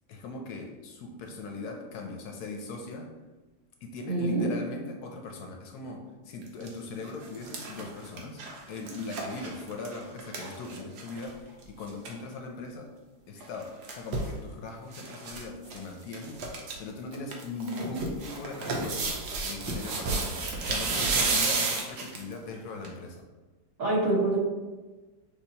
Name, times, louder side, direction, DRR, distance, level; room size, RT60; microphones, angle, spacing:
voice 1, 0.1-3.1 3.8-8.4 8.7-12.9 13.3-16.4 16.8-19.2 19.4-20.3 20.6-23.3, left 3 dB, 70° left, 2 dB, 1.1 m, -39 dB
voice 2, 4.1-4.5 23.8-24.4, right 2 dB, 55° right, -6 dB, 1.7 m, -25 dB
sound 1, 6.4-6.7 7.1-11.3 11.6-11.7 11.9-12.1 13.4-14.3 14.9-15.4 15.7-15.8 16.1-16.7 17.1-22.3 22.8-22.9, right 3 dB, 75° right, 1.3 m, -32 dB
6.2 x 3.0 x 2.8 m, 1.2 s
omnidirectional pair, 1.8 m